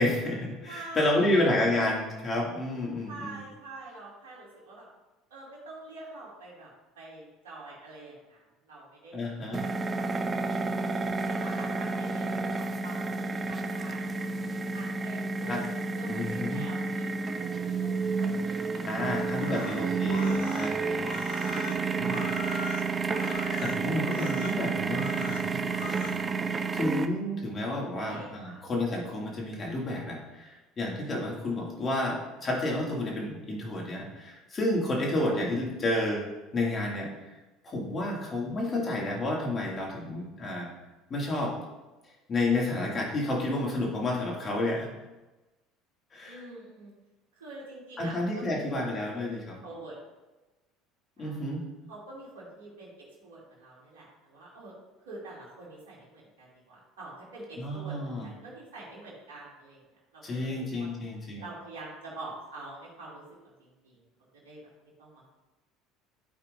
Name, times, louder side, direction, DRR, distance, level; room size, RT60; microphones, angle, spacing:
voice 1, 0.0-3.4 9.1-9.6 15.4-15.6 16.1-16.6 18.8-21.1 21.8-22.3 23.3-26.1 26.7-36.3 36.5-37.1 37.6-40.7 41.1-41.5 42.3-44.9 46.1-46.4 48.0-49.6 51.2-51.6 57.6-58.3 60.2-61.4, left 1 dB, 35° left, -2 dB, 2.4 m, -30 dB
voice 2, 0.7-1.5 3.1-4.9 5.3-6.7 7.0-9.3 9.6-14.3 14.7-17.0 17.3-19.9 20.8-21.2 27.9-28.6 35.7-35.8 46.2-46.9 47.3-48.8 49.1-50.0 51.2-51.4 51.9-52.9 53.2-54.7 55.1-59.8 60.1-60.9 61.4-63.9 64.4-64.6 65.0-65.3, right 2 dB, 85° right, -5 dB, 2.4 m, -46 dB
sound 1, 9.5-27.1, right 4 dB, 30° right, 0.7 m, -30 dB
sound 2, 19.4-26.2, left 5 dB, 75° left, 0.7 m, -42 dB
13.0 x 4.4 x 2.6 m, 1.1 s
hypercardioid pair, 80°, 0 cm